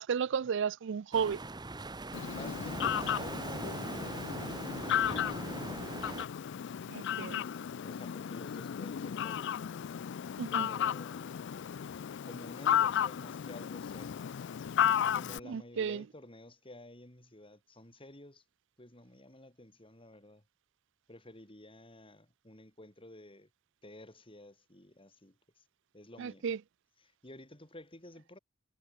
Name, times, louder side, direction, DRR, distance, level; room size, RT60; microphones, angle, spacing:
voice 1, 0.0-1.4 6.9-7.4 10.4-10.7 15.5-16.0 26.2-26.6, right 6 dB, 65° right, 0.4 m, -33 dB
sound 1, 1.1-6.3, right 2 dB, 20° right, 1.3 m, -41 dB
Fowl, 2.1-15.4, left 9 dB, 60° left, 0.4 m, -34 dB
voice 2, 2.3-5.6 7.2-9.8 10.5-11.4 12.2-14.3 15.0-18.4 18.8-20.4 21.1-23.5 23.8-25.6 25.9-26.5 27.0-28.4, left 1 dB, 25° left, 5.9 m, -52 dB
head